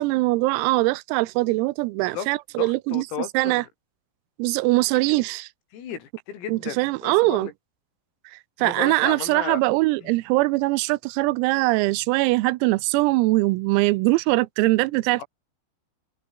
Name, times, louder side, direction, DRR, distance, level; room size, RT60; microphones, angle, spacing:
voice 1, 0.0-3.1 3.4-3.6 4.4-5.5 6.5-7.5 8.3-15.2, right 22 dB, 90° right, 3.5 m, -22 dB
voice 2, 2.6-3.7 4.9-5.0 5.7-7.5 8.6-9.6 10.0-10.1 15.2-15.3, left 8 dB, 85° left, 7.1 m, -34 dB
omnidirectional pair, 6.0 m